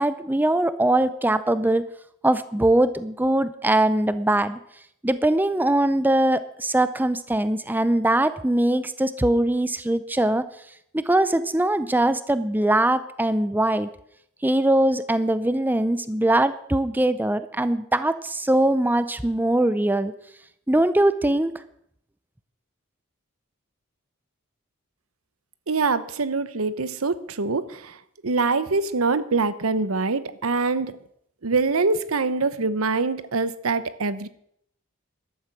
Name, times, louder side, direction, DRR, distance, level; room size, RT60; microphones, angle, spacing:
voice 1, 0.0-1.9 2.2-4.6 5.0-10.4 10.9-13.9 14.4-20.1 20.7-21.5, right 1 dB, 10° right, 13 dB, 0.5 m, -21 dB
voice 2, 25.7-28.0 28.2-31.0 31.4-34.3, right 3 dB, 85° right, 14 dB, 0.9 m, -24 dB
14.5 x 12.0 x 6.0 m, 0.71 s
head